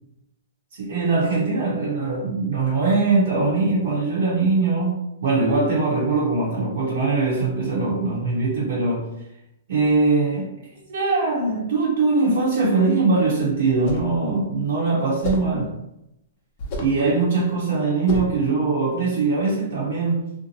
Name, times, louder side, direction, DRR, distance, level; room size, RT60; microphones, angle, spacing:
voice 1, 0.8-9.1 9.7-10.5 10.9-15.7 16.8-20.3, right 3 dB, 70° right, -7 dB, 0.8 m, -21 dB
sound 1, 13.7-14.2 15.2-15.6 16.6-17.0 18.1-18.4, left 1 dB, 40° left, 0.6 m, -29 dB
2.6 x 2.1 x 2.9 m, 0.84 s
hypercardioid pair, 150°, 0 cm